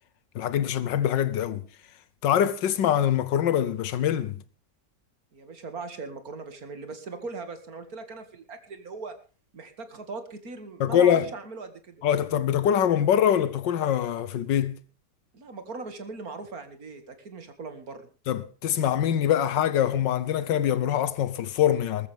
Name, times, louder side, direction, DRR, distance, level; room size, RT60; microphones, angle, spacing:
voice 1, 0.3-1.6 2.2-4.4 10.8-11.3 12.0-14.8 18.3-22.1, left 10 dB, 90° left, 1.6 m, -24 dB
voice 2, 5.3-9.2 9.5-12.0 15.3-18.1, right 4 dB, 55° right, 2.5 m, -39 dB
20.5 x 13.5 x 3.5 m
omnidirectional pair, 1.9 m